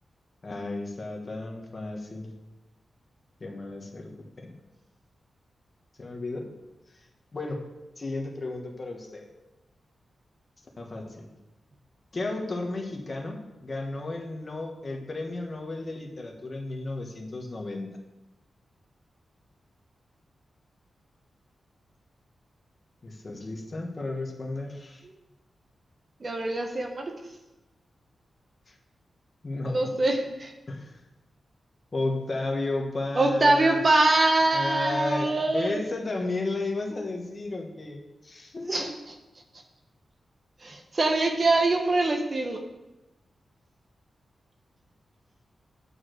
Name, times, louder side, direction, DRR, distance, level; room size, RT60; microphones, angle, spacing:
voice 1, 0.4-2.3 3.4-4.5 6.0-6.5 7.3-7.6 8.0-9.3 10.8-11.3 12.1-18.0 23.0-25.0 29.4-29.8 30.7-30.9 31.9-33.8 34.5-38.9, left 2 dB, 40° left, 1 dB, 1.5 m, -33 dB
voice 2, 26.2-27.1 29.7-30.5 33.1-35.8 38.7-39.1 40.6-42.6, right 2 dB, 40° right, 3 dB, 1.1 m, -24 dB
8.6 x 4.8 x 6.6 m, 1.0 s
wide cardioid pair, 100°, 0 cm